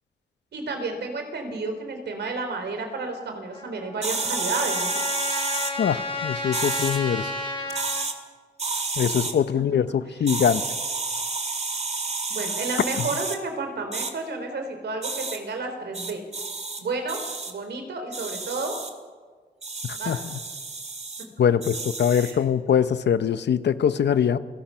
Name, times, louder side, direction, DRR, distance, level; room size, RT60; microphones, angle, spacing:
voice 1, 0.5-5.0 10.2-10.4 12.3-16.2 16.8-17.2 17.5-18.8 19.9-20.2 22.1-22.5, right 3 dB, 85° right, 5 dB, 3.9 m, -31 dB
Trumpet, 3.5-8.0, left 2 dB, 30° left, 5.3 m, -32 dB
sound 1, 4.0-5.7 6.5-7.0 7.7-8.1 8.6-9.3 10.3-13.4 13.9-14.1 15.0-15.4 15.9-16.8 17.1-17.5 18.1-18.9 19.6-21.2 21.6-22.4, right 3 dB, 40° right, 2.6 m, -30 dB
voice 2, 5.8-7.3 9.0-10.6 19.8-20.4 21.4-24.4, left 8 dB, 90° left, 12 dB, 0.9 m, -23 dB
29.0 x 18.0 x 5.7 m, 1.5 s
cardioid pair, 80°, 17 cm